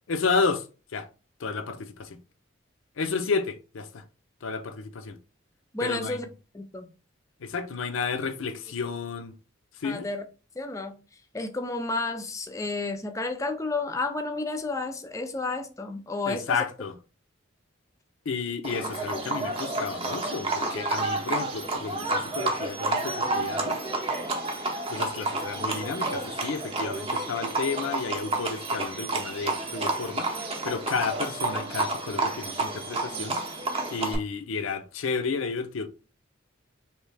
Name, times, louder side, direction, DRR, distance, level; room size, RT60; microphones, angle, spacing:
voice 1, 0.1-0.7 0.9-1.1 1.4-2.2 3.0-4.0 4.4-5.2 5.8-6.2 7.4-9.4 9.8-10.1 16.3-17.0 18.3-23.8 24.9-33.4 33.9-35.9, left 4 dB, 80° left, 0.5 m, -31 dB
voice 2, 5.7-6.3 6.5-6.9 9.8-10.2 10.6-11.0 11.3-16.6, left 3 dB, 15° left, 0.4 m, -31 dB
Livestock farm animals working animals, 18.6-34.1, right 2 dB, 30° right, 0.6 m, -30 dB
3.2 x 2.8 x 3.2 m
head